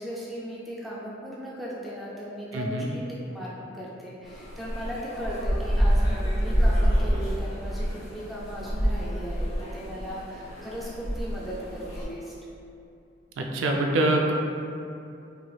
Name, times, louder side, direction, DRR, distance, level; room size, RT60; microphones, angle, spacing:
voice 1, 0.0-12.3, equal, ahead, -7 dB, 0.3 m, -37 dB
voice 2, 2.5-2.9 13.4-14.3, right 2 dB, 85° right, 1 dB, 0.3 m, -24 dB
sound 1, 4.3-12.0, equal, 35° left, 0.7 m, -27 dB
3.0 x 2.8 x 2.3 m, 2.6 s
head